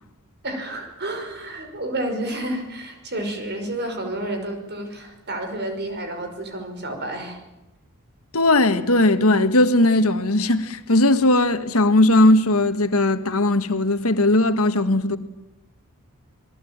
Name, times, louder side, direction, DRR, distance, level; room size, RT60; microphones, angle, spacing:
voice 1, 0.4-7.4, right 1 dB, 50° right, 5.5 m, -30 dB
voice 2, 8.3-15.2, left 2 dB, 70° left, 1.7 m, -18 dB
27.5 x 20.5 x 8.9 m
head